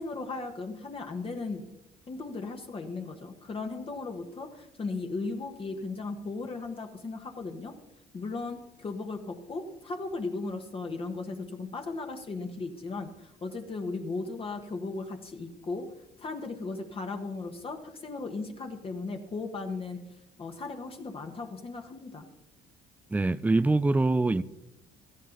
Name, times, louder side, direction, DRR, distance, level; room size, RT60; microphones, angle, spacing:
voice 1, 0.0-1.7 2.1-7.7 8.1-15.9 16.2-20.0 20.4-22.2, left 3 dB, 35° left, 1.3 m, -36 dB
voice 2, 23.1-24.4, right 2 dB, 10° right, 0.4 m, -24 dB
16.5 x 13.5 x 4.0 m
cardioid pair, 110°, 17 cm